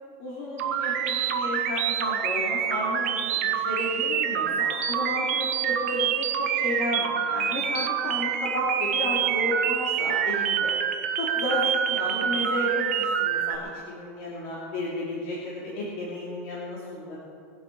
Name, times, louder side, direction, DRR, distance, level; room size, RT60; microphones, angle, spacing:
voice 1, 0.2-10.7 11.2-17.2, left 1 dB, 50° left, -6 dB, 3.2 m, -32 dB
sound 1, 0.6-13.6, right 9 dB, 75° right, 1.2 m, -26 dB
22.0 x 8.2 x 5.5 m, 2.4 s
supercardioid pair, 175°, 8 cm